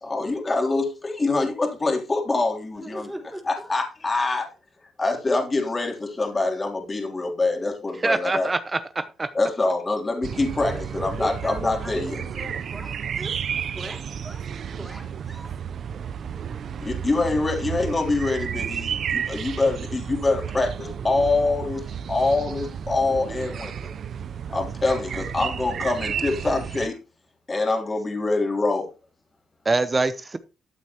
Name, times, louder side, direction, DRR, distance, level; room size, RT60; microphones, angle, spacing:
voice 1, 0.0-3.1 3.5-4.5 5.0-8.5 9.3-12.2 16.8-23.7 24.5-27.0 27.5-28.9, left 3 dB, 25° left, 3.0 m, -25 dB
voice 2, 2.7-3.7 10.7-13.4 13.7-14.5 14.8-15.5, right 1 dB, 5° right, 3.5 m, -38 dB
voice 3, 8.0-9.3 29.6-30.4, right 3 dB, 25° right, 0.7 m, -24 dB
sound 1, 10.2-26.9, right 8 dB, 60° right, 0.6 m, -32 dB
13.0 x 8.2 x 3.0 m
cardioid pair, 90°, 0 cm